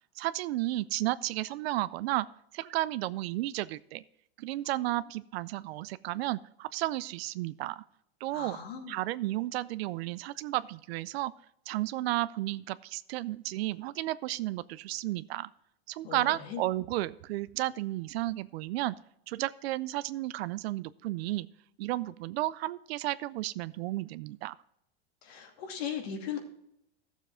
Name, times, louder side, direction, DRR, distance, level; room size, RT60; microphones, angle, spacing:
voice 1, 0.2-2.3 2.5-4.0 4.4-7.8 8.2-8.6 8.9-11.3 11.7-15.5 15.9-19.0 19.3-21.5 21.8-24.5, right 16 dB, 80° right, 17 dB, 0.5 m, -33 dB
voice 2, 8.3-9.0 16.1-16.6 25.2-26.4, left 7 dB, 85° left, 3 dB, 2.5 m, -38 dB
14.0 x 7.2 x 3.7 m, 0.76 s
supercardioid pair, 160°, 30 cm